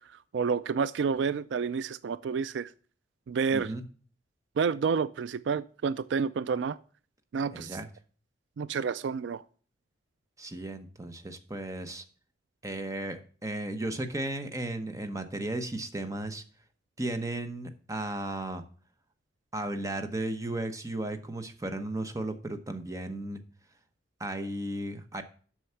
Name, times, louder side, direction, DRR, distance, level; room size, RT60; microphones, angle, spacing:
voice 1, 0.3-2.7 3.3-3.7 4.6-6.8 7.3-7.8 8.6-9.4, right 5 dB, 70° right, 0.3 m, -29 dB
voice 2, 3.5-3.8 7.5-7.9 10.4-12.0 12.6-16.4 17.0-18.6 19.5-23.4 24.2-25.2, right 1 dB, 20° right, 0.9 m, -35 dB
7.9 x 6.3 x 5.7 m
head